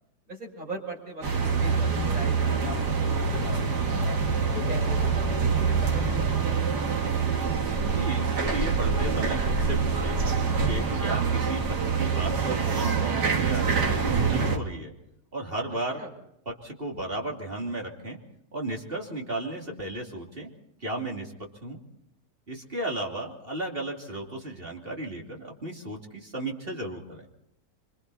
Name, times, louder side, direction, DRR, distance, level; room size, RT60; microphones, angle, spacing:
voice 1, 0.3-3.6 4.5-6.8 16.0-16.1, right 1 dB, 55° right, -4 dB, 6.5 m, -40 dB
sound 1, 1.2-14.6, right 5 dB, 70° right, 2.4 m, -25 dB
voice 2, 7.9-10.2 10.6-14.9 15.3-16.0 16.5-18.2 18.5-20.5 20.8-21.8 22.5-27.3, right 2 dB, 35° right, 0 dB, 3.0 m, -34 dB
26.0 x 25.5 x 4.1 m, 0.82 s
omnidirectional pair, 1.8 m